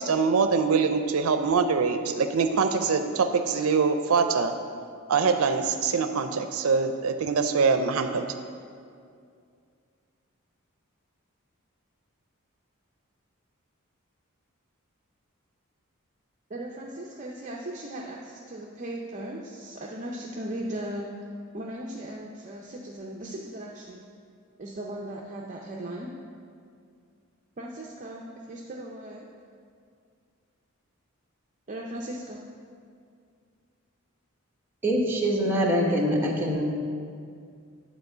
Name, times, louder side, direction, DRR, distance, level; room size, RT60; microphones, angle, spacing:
voice 1, 0.0-4.5 5.1-8.3, right 5 dB, 80° right, 8 dB, 0.5 m, -24 dB
voice 2, 16.5-21.1 21.5-24.0 24.6-26.1 27.6-29.3 31.7-32.4, right 1 dB, 35° right, -2 dB, 0.6 m, -37 dB
voice 3, 34.8-36.6, equal, 10° right, -2 dB, 1.0 m, -24 dB
9.5 x 4.4 x 6.7 m, 2.3 s
head